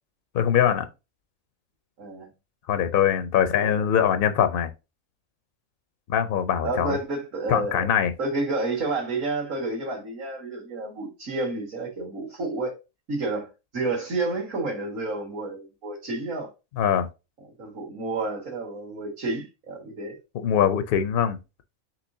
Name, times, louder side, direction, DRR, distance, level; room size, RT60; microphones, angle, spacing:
voice 1, 0.3-0.9 2.7-4.7 6.1-7.0 7.5-8.1 16.8-17.1 20.3-21.4, left 9 dB, 65° left, 0.5 m, -22 dB
voice 2, 2.0-2.3 3.5-3.9 6.6-7.9 8.2-12.8 13.1-13.5 13.7-16.5 17.6-20.2, right 2 dB, 70° right, 1.8 m, -30 dB
6.0 x 3.1 x 2.6 m
omnidirectional pair, 1.4 m